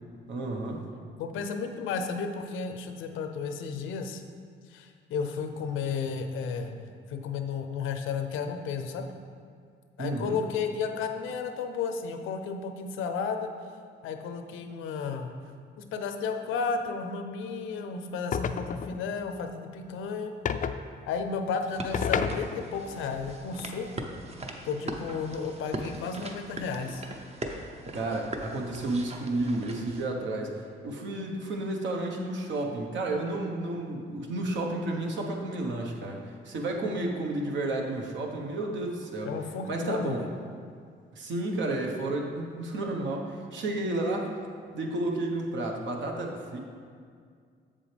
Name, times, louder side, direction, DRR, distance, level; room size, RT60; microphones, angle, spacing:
voice 1, 0.3-0.8 10.0-10.4 27.9-39.3 39.7-40.2 41.1-44.3 44.7-46.6, right 2 dB, 70° right, 1 dB, 1.2 m, -31 dB
voice 2, 1.2-4.2 4.7-6.8 7.1-9.1 10.0-13.5 14.0-15.3 15.8-20.3 21.1-23.9 24.6-27.1 39.2-40.3, left 5 dB, 85° left, 6 dB, 0.7 m, -33 dB
sound 1, 18.3-19.0 20.4-20.8 21.9-22.8, left 7 dB, 40° left, 0.4 m, -30 dB
sound 2, 21.7-30.0, right 2 dB, 30° right, 0.8 m, -40 dB
7.5 x 7.1 x 3.4 m, 2.1 s
cardioid pair, 90°, 20 cm